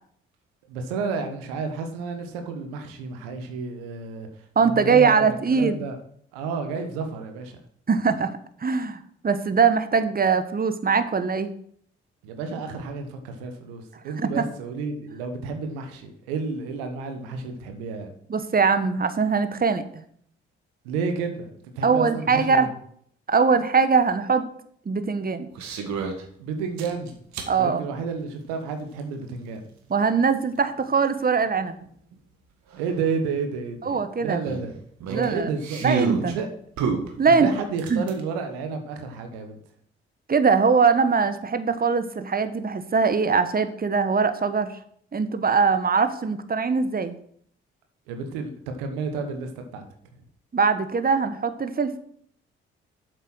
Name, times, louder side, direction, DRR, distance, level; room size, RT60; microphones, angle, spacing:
voice 1, 0.7-4.3 4.6-5.2 5.5-6.0 6.3-7.6 12.2-18.1 20.8-21.5 21.8-22.7 26.4-27.2 27.5-29.6 32.8-34.7 35.1-35.8 36.2-36.5 37.3-39.6 48.1-49.8, right 5 dB, 85° right, 6 dB, 1.2 m, -31 dB
voice 2, 4.6-5.8 7.9-8.3 8.6-11.5 14.2-14.4 18.3-20.0 21.8-22.7 23.3-24.4 24.8-25.5 27.5-27.9 29.9-31.8 33.8-34.4 35.1-35.5 35.8-36.4 37.2-37.5 37.9-38.0 40.3-44.7 45.1-47.1 50.5-52.0, right 5 dB, 30° right, 11 dB, 1.2 m, -22 dB
sound 1, 25.5-26.2 26.8-27.5 29.0-29.1 31.8-31.9 32.1-32.2 32.7-32.8 34.5-36.3 36.8-38.2, right 5 dB, 70° right, 1.7 m, -29 dB
8.1 x 7.6 x 6.2 m, 0.63 s
hypercardioid pair, 45°, 29 cm